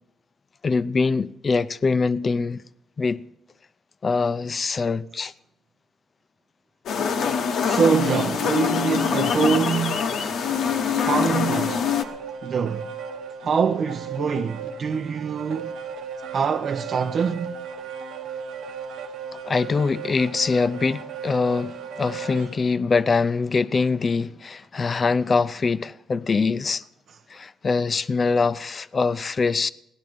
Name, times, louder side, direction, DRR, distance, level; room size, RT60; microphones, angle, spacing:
voice 1, 0.6-2.6 3.0-3.3 4.0-5.3 19.4-26.8 27.3-29.7, left 4 dB, 35° left, 0.5 m, -23 dB
sound 1, 6.9-12.0, left 7 dB, 70° left, 1.0 m, -24 dB
voice 2, 7.6-10.1 11.0-11.9 12.4-12.9 13.4-15.8 16.3-17.5, right 6 dB, 50° right, 0.6 m, -24 dB
sound 2, 10.0-22.6, right 6 dB, 80° right, 1.0 m, -37 dB
16.5 x 10.5 x 5.1 m
cardioid pair, 90°, 0 cm